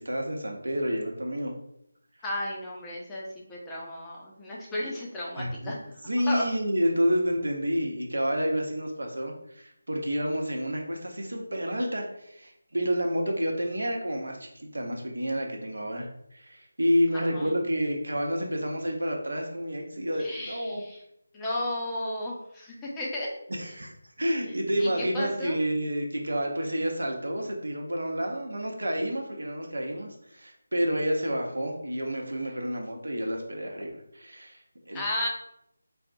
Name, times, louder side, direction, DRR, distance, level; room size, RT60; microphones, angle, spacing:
voice 1, 0.0-1.5 5.4-5.7 6.1-20.8 23.6-35.0, equal, 85° right, 1 dB, 0.8 m, -29 dB
voice 2, 2.2-6.0 6.3-6.4 17.1-17.5 20.2-21.0 21.3-23.3 23.6-23.7 24.8-25.5 34.9-35.3, left 1 dB, 10° left, -4 dB, 0.5 m, -34 dB
4.4 x 2.1 x 2.6 m, 0.75 s
figure-of-eight pair, 165°, 0 cm